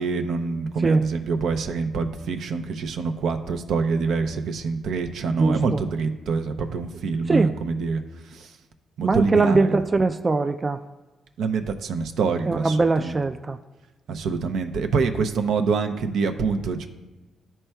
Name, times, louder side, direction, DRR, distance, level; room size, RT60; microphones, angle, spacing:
voice 1, 0.0-8.0 8.3-8.5 9.0-9.8 11.4-13.1 14.1-16.9, right 4 dB, 75° right, 6 dB, 0.6 m, -25 dB
voice 2, 5.4-5.8 7.3-7.6 9.0-10.8 12.5-13.6, right 3 dB, 30° right, 8 dB, 0.3 m, -22 dB
12.0 x 4.4 x 2.3 m, 1.2 s
cardioid pair, 80°, 0 cm